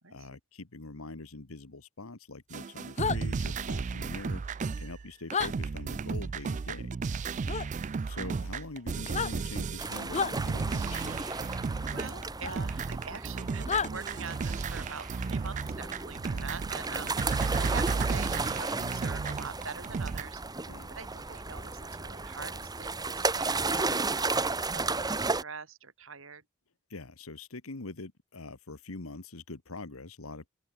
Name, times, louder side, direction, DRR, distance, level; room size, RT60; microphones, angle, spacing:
voice 1, 0.1-6.9 8.0-11.3 16.3-16.4 16.9-17.2 20.7-20.9 26.9-30.5, left 3 dB, 85° left, 1.6 m, -44 dB
sound 1, 2.5-20.2, right 4 dB, 35° right, 0.4 m, -34 dB
sound 2, 3.0-3.2 5.3-5.5 7.5-7.7 9.0-9.3 10.1-10.3 12.4-12.5 13.7-13.9, left 6 dB, 35° left, 0.8 m, -30 dB
sound 3, 9.8-25.4, right 3 dB, 20° right, 1.4 m, -34 dB
voice 2, 11.9-26.4, right 5 dB, 70° right, 3.9 m, -44 dB
open air
head